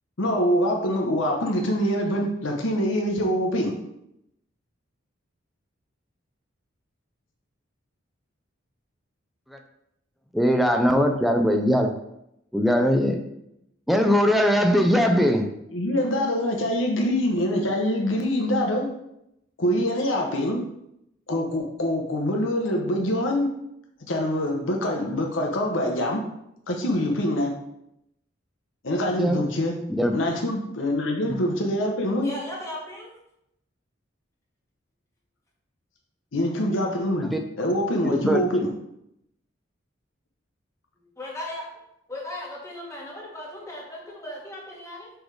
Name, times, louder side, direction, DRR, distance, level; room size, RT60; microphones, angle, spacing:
voice 1, 0.2-3.7 15.7-18.9 19.6-20.6 21.3-23.5 24.1-26.2 26.7-27.5 28.8-29.8 30.1-32.3 36.3-38.7, equal, 75° left, 1 dB, 0.9 m, -24 dB
voice 2, 10.3-11.9 12.5-13.2 13.9-15.5 29.2-29.4 30.0-30.1 37.3-37.4 38.1-38.4, equal, ahead, 4 dB, 0.5 m, -20 dB
voice 3, 32.2-33.1 41.2-41.6 42.1-45.1, left 1 dB, 15° left, -3 dB, 1.5 m, -37 dB
6.3 x 3.3 x 4.8 m, 0.80 s
head